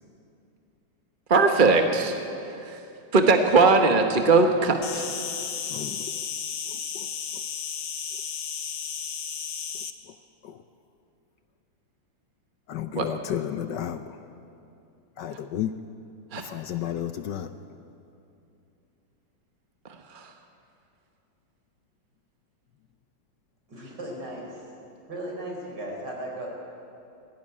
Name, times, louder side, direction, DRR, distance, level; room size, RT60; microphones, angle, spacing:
voice 1, 1.3-2.1 2.6-2.8 3.1-5.1 13.0-13.1 16.3-16.4 20.1-20.3, right 3 dB, 35° right, 4 dB, 1.0 m, -20 dB
Insect, 4.8-9.9, left 7 dB, 50° left, 1.2 m, -33 dB
voice 2, 5.7-6.2 6.7-7.4 10.1-10.2 10.4-10.6 12.7-14.2 15.2-15.7 16.3-17.5, left 10 dB, 70° left, 10 dB, 1.2 m, -33 dB
voice 3, 23.7-24.6 25.1-26.5, right 1 dB, 55° right, -1 dB, 5.2 m, -36 dB
19.0 x 16.5 x 9.7 m, 2.7 s
omnidirectional pair, 2.2 m